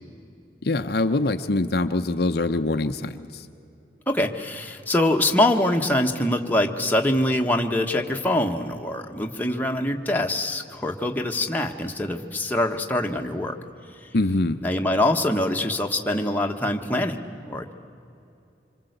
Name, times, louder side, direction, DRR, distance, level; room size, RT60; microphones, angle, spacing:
voice 1, 0.6-3.5 14.1-14.6, left 2 dB, 60° left, 8 dB, 0.7 m, -24 dB
voice 2, 4.1-13.6 14.0-14.1 14.6-17.7, left 1 dB, 10° left, 2 dB, 1.3 m, -24 dB
26.0 x 24.5 x 8.1 m, 2.7 s
head